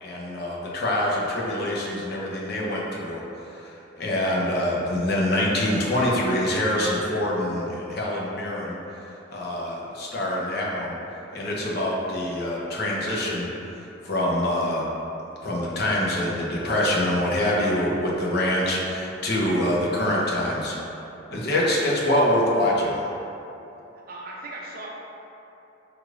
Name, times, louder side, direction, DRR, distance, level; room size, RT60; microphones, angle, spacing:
voice 1, 0.0-3.2 3.5-8.8 9.3-10.9 11.3-13.5 14.0-14.9 15.4-20.7 21.3-22.9, left 1 dB, 55° left, -4 dB, 0.7 m, -25 dB
voice 2, 24.1-24.9, right 2 dB, 50° right, -2 dB, 0.5 m, -38 dB
5.0 x 3.2 x 2.4 m, 3.0 s
head